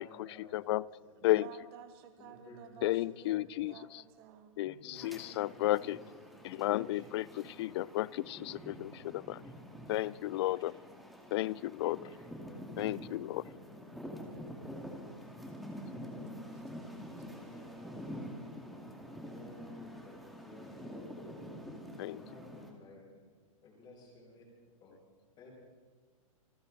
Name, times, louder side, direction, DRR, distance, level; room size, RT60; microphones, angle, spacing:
voice 1, 0.0-1.4 2.2-2.6 3.0-3.6 4.6-6.1 6.5-7.8 8.1-8.5 12.0-12.7 17.3-17.8 19.1-21.5 22.0-23.2 23.6-24.4 24.8-25.0 25.4-25.5, left 2 dB, 25° left, -3 dB, 6.1 m, -55 dB
voice 2, 0.5-0.8 1.2-1.4 2.8-3.7 4.6-4.7 5.0-6.0 6.6-7.2 7.6-9.4 9.9-10.7 11.3-12.0 12.8-13.4 22.0-22.2, left 16 dB, 50° left, 23 dB, 0.4 m, -32 dB
voice 3, 1.2-4.6 16.5-17.3, right 9 dB, 45° right, 7 dB, 1.9 m, -53 dB
sound 1, 5.0-22.7, equal, ahead, 2.2 m, -47 dB
26.0 x 14.0 x 4.0 m, 1.4 s
hypercardioid pair, 135°, 18 cm